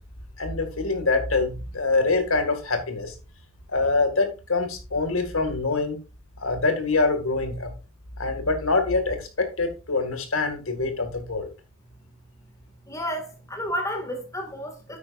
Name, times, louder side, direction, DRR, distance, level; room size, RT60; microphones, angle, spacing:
voice 1, 0.4-3.1 3.7-6.0 6.4-7.7 8.2-11.5, left 3 dB, 85° left, 2.2 m, -25 dB
voice 2, 12.9-15.0, equal, 15° left, 2.1 m, -31 dB
9.6 x 8.8 x 2.6 m
head